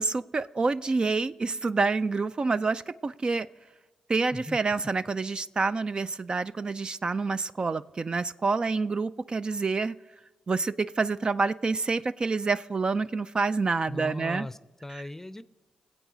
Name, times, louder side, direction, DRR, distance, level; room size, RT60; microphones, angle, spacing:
voice 1, 0.0-3.5 4.1-10.0 10.5-14.5 14.9-15.0, right 4 dB, 40° right, 13 dB, 0.3 m, -27 dB
voice 2, 13.9-15.4, left 1 dB, 15° left, 16 dB, 0.6 m, -38 dB
20.5 x 8.1 x 3.9 m, 1.2 s
supercardioid pair, 50°, 2 cm